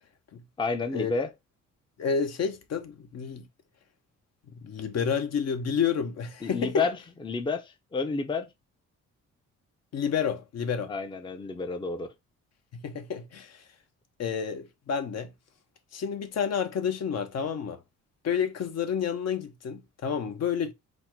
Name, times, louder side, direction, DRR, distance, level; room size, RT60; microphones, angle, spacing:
voice 1, 0.6-1.3 6.4-7.0 7.2-8.5 10.9-12.1, left 4 dB, 15° left, 0.6 m, -30 dB
voice 2, 2.0-3.5 4.6-6.8 9.9-10.9 12.7-13.6 14.2-15.3 15.9-17.8 18.2-20.7, left 7 dB, 55° left, 0.8 m, -30 dB
4.2 x 2.1 x 4.4 m
cardioid pair, 90°, 30 cm